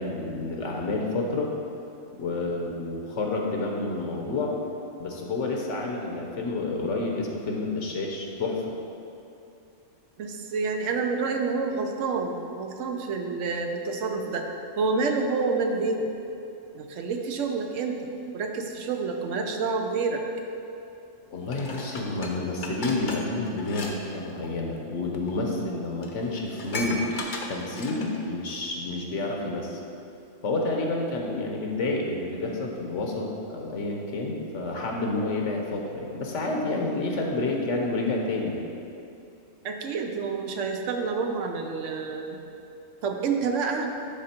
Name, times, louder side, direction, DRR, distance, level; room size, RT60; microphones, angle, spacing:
voice 1, 0.0-1.5 2.1-4.5 5.0-8.7 21.3-27.0 27.5-29.8 30.4-38.6, left 2 dB, 70° left, 0 dB, 1.1 m, -29 dB
voice 2, 10.2-14.4 14.8-16.1 16.7-18.1 18.3-20.2 31.2-31.3 39.6-42.4 43.0-43.9, right 4 dB, 75° right, 3 dB, 1.0 m, -28 dB
Dishes pots and pans, 21.5-23.9 24.2-24.5 25.3-25.4 25.7-25.8 26.0-28.2 28.7-28.8, left 2 dB, 45° left, 0.8 m, -36 dB
11.0 x 3.7 x 4.3 m, 2.7 s
omnidirectional pair, 1.3 m